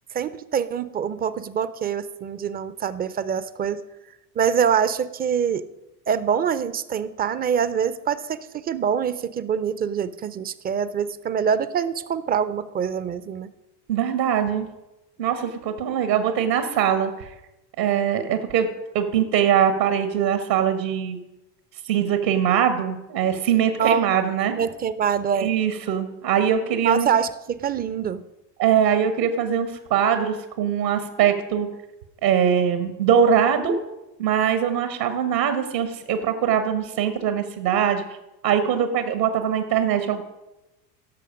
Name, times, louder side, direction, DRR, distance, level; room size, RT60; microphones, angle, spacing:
voice 1, 0.1-3.8 4.4-5.7 6.1-13.5 23.8-24.1 24.5-25.5 26.8-28.2, right 7 dB, 20° right, 15 dB, 0.4 m, -25 dB
voice 2, 13.9-14.7 15.2-17.3 17.8-18.7 18.9-21.2 21.9-24.5 25.4-27.1 28.6-31.7 32.2-33.7 34.2-38.0 38.4-40.2, right 8 dB, 75° right, 9 dB, 1.4 m, -22 dB
17.0 x 6.7 x 5.0 m, 0.97 s
hypercardioid pair, 80°, 50 cm